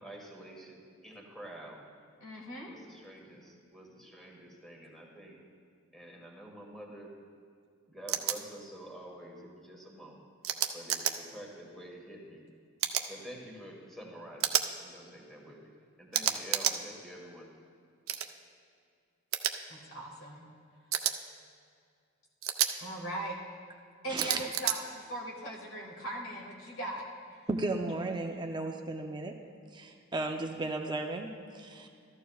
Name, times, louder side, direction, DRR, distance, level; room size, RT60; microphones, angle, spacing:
voice 1, 0.0-1.8 2.6-5.4 5.9-7.1 7.9-10.2 10.7-12.5 13.1-15.7 16.0-17.5, right 1 dB, ahead, -1 dB, 1.5 m, -48 dB
voice 2, 2.2-2.7 19.7-20.4 22.8-23.4 24.0-27.4, right 1 dB, 75° left, -1 dB, 2.1 m, -40 dB
sound 1, 8.1-8.4 10.4-11.1 12.8-13.1 14.4-14.7 16.1-16.8 18.1-18.3 19.3-19.5 20.9-21.1 22.4-22.7 24.2-24.8, right 10 dB, 75° right, 0.5 m, -30 dB
voice 3, 24.1-24.5 27.5-29.4 29.7-31.9, right 2 dB, 20° right, 3 dB, 0.5 m, -35 dB
14.0 x 13.5 x 2.3 m, 2.3 s
head